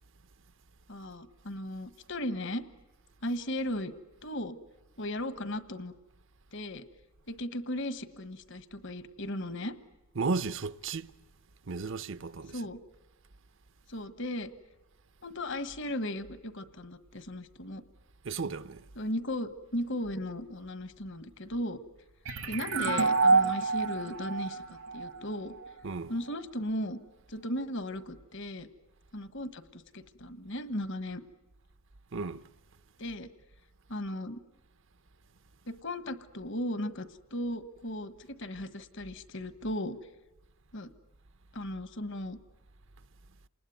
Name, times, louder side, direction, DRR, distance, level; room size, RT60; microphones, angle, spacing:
voice 1, 0.9-2.7 3.2-3.9 4.2-4.6 5.0-5.9 6.5-6.8 7.3-9.7 12.5-12.8 13.9-14.5 15.2-17.8 19.0-21.8 22.4-24.6 24.9-25.5 26.1-27.0 27.3-28.7 29.1-31.2 33.0-33.3 33.9-34.4 35.7-40.0 40.7-40.9 41.5-42.4, left 1 dB, 60° left, 1.4 m, -36 dB
voice 2, 10.2-11.1 11.7-12.6 18.2-18.8 25.8-26.1 32.1-32.4, right 4 dB, 65° right, 0.8 m, -34 dB
sound 1, 22.3-25.7, right 4 dB, 80° right, 1.9 m, -27 dB
28.5 x 20.5 x 9.3 m
head